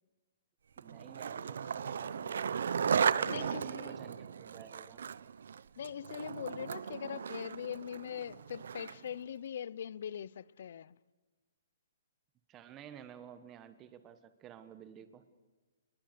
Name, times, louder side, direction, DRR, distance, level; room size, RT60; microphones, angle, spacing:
voice 1, 0.8-2.6 2.9-5.0 12.5-15.2, right 9 dB, 15° right, 1.3 m, -51 dB
Skateboard, 0.8-9.1, right 7 dB, 70° right, 0.7 m, -36 dB
voice 2, 3.3-4.0 5.8-11.0, left 9 dB, 55° left, 0.6 m, -42 dB
29.0 x 21.0 x 6.8 m
hypercardioid pair, 165°, 0 cm